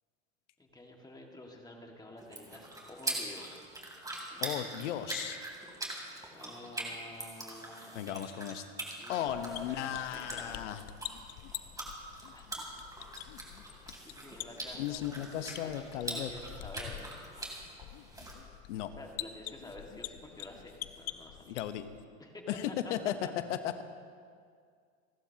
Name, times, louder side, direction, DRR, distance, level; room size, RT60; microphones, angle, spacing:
voice 1, 0.6-3.6 4.3-4.7 6.3-8.0 9.0-10.7 11.1-11.3 12.2-12.7 14.0-17.2 18.8-21.6 22.2-23.3, left 1 dB, 10° left, 1 dB, 1.9 m, -49 dB
sound 1, 2.2-18.3, right 2 dB, 10° right, 3.1 m, -43 dB
voice 2, 4.4-5.4 7.9-8.6 9.1-10.8 14.8-16.3 18.7-18.9 21.5-21.8 22.5-23.1 23.5-23.8, left 11 dB, 85° left, 10 dB, 1.0 m, -36 dB
sound 2, 9.3-22.0, left 14 dB, 45° left, 0.7 m, -47 dB
29.5 x 12.0 x 2.9 m, 2.1 s
supercardioid pair, 115°, 35 cm